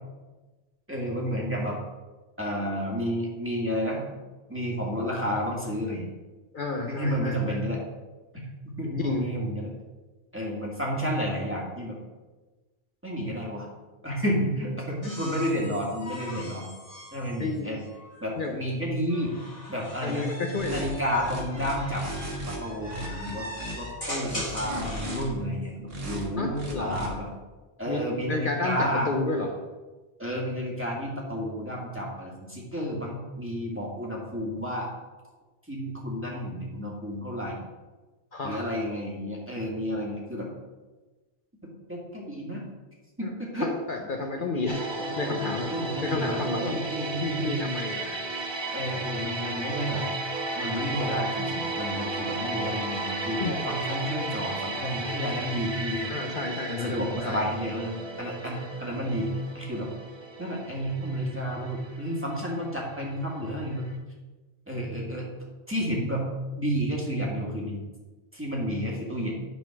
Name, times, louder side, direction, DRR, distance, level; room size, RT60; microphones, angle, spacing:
voice 1, 0.9-1.8 2.4-4.0 4.5-6.1 6.9-7.8 8.3-9.7 10.3-12.0 13.0-13.7 14.0-16.7 17.1-17.8 18.2-19.3 19.7-20.3 20.7-22.1 22.5-23.5 23.8-27.3 27.8-29.1 30.2-34.9 35.7-37.7 38.4-40.5 41.9-42.6 43.2-43.7 44.4-44.7 45.0-47.5 48.7-50.0 50.6-56.1 56.7-59.9 60.4-63.9 64.7-65.3 65.7-66.3 66.6-67.8 68.3-69.3, equal, 10° right, -3 dB, 2.0 m, -31 dB
voice 2, 6.5-7.6 9.0-9.2 15.6-15.7 17.4-17.8 18.4-18.5 20.0-20.9 26.4-27.0 27.9-29.5 38.3-38.7 43.2-43.3 43.6-44.9 45.2-46.7 47.2-48.2 53.4-53.6 56.1-57.4, left 3 dB, 55° left, 2 dB, 0.9 m, -31 dB
sound 1, 15.0-18.3 19.1-25.3 26.8-27.3, equal, 30° left, 2.1 m, -40 dB
sound 2, 20.6-20.9 21.2-22.6 22.9-23.7 24.2-25.2 25.9-26.2 26.5-27.1, right 1 dB, 65° right, 1.9 m, -35 dB
sound 3, 44.7-63.5 63.8-64.0, right 2 dB, 30° right, 0.8 m, -34 dB
10.5 x 4.1 x 5.9 m, 1.2 s
omnidirectional pair, 1.1 m